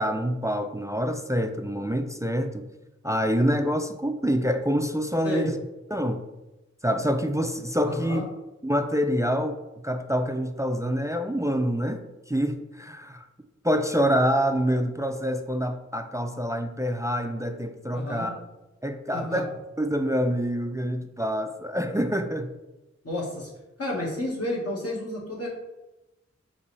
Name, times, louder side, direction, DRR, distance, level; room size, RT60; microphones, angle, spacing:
voice 1, 0.0-2.7 3.0-5.6 5.9-6.2 6.8-8.2 8.6-9.6 9.8-13.3 13.6-18.4 18.8-19.5 19.8-22.5, equal, 10° right, 7 dB, 0.4 m, -26 dB
voice 2, 7.9-8.2 17.9-18.3 19.1-19.4 23.0-23.5 23.8-25.5, left 1 dB, 55° left, -4 dB, 1.5 m, -31 dB
5.2 x 3.0 x 3.2 m, 0.99 s
wide cardioid pair, 40°, 29 cm